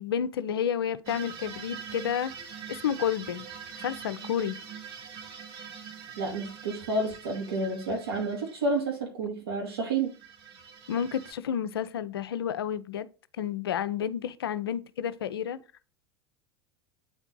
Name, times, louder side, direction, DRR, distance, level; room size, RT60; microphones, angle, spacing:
voice 1, 0.0-2.3 2.7-3.5 3.8-4.6 10.9-13.1 13.4-15.6, left 8 dB, 70° left, 0.6 m, -30 dB
sound 1, 1.1-8.9 10.0-11.3, right 7 dB, 40° right, 2.2 m, -44 dB
voice 2, 6.2-10.1, right 2 dB, 70° right, 2.7 m, -30 dB
8.7 x 4.5 x 3.8 m
figure-of-eight pair, 80°, 13 cm